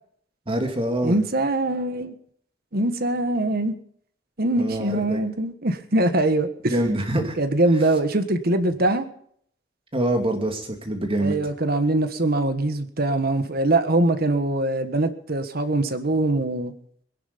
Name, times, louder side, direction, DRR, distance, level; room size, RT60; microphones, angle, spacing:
voice 1, 0.5-1.2 4.6-5.2 6.7-7.4 9.9-11.4, right 1 dB, 30° right, 2.6 m, -25 dB
voice 2, 1.0-2.1 2.7-3.8 4.4-6.7 7.4-9.1 11.2-16.7, right 2 dB, 55° right, 1.5 m, -23 dB
21.0 x 11.0 x 5.3 m
head